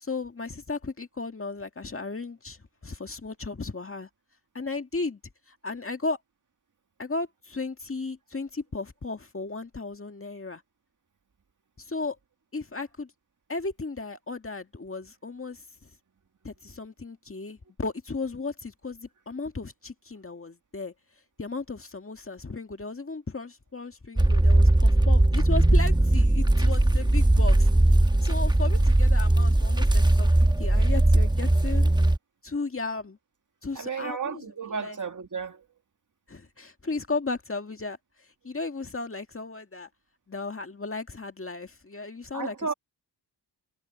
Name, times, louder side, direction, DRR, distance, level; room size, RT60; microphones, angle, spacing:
voice 1, 0.0-4.1 4.5-5.2 5.5-6.2 7.0-10.6 11.8-12.2 12.5-13.1 13.5-15.9 16.4-20.9 21.4-27.7 28.2-31.9 32.4-33.2 33.6-34.4 34.7-35.0 36.3-38.0 38.4-39.9 40.3-42.6, left 3 dB, 30° left, 1.9 m, -35 dB
sound 1, 24.2-32.2, right 1 dB, 10° right, 1.1 m, -20 dB
voice 2, 33.7-35.7 42.3-42.7, right 5 dB, 45° right, 1.9 m, -33 dB
wide cardioid pair, 90°, 43 cm